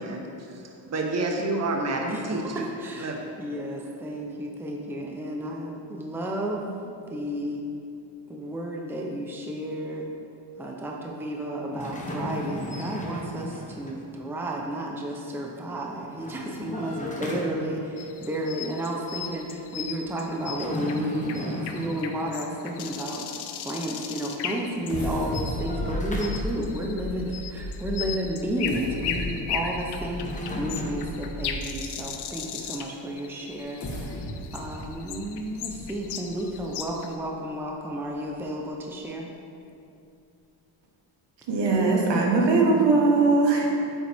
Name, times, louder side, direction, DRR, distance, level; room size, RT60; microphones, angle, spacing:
voice 1, 0.0-2.7 3.0-3.2, right 2 dB, 35° right, 1 dB, 1.1 m, -29 dB
voice 2, 2.5-7.7 8.3-10.1 10.6-23.3 23.6-30.3 30.6-34.2 34.5-39.3, right 1 dB, 5° right, -1 dB, 0.7 m, -32 dB
sound 1, 11.7-14.0 15.9-17.9 20.3-22.4 24.8-26.9 29.8-30.9, equal, 15° left, 1.1 m, -36 dB
sound 2, 18.0-25.8 26.2-37.2, left 7 dB, 60° left, 0.7 m, -37 dB
sound 3, 24.9-32.0 32.6-32.7 33.6-37.1 37.6-37.7 38.1-38.3, left 1 dB, 35° left, 1.4 m, -35 dB
voice 3, 41.5-43.7, right 3 dB, 60° right, 0 dB, 1.6 m, -20 dB
8.5 x 7.9 x 3.6 m, 2.6 s
cardioid pair, 115°, 47 cm